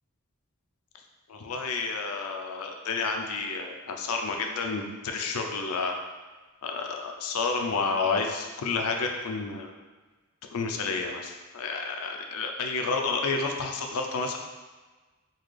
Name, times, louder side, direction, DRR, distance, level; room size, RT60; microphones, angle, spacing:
voice 1, 1.3-6.0 6.6-9.7 10.5-14.4, left 4 dB, 90° left, 3 dB, 0.5 m, -30 dB
4.0 x 2.3 x 3.2 m, 1.3 s
head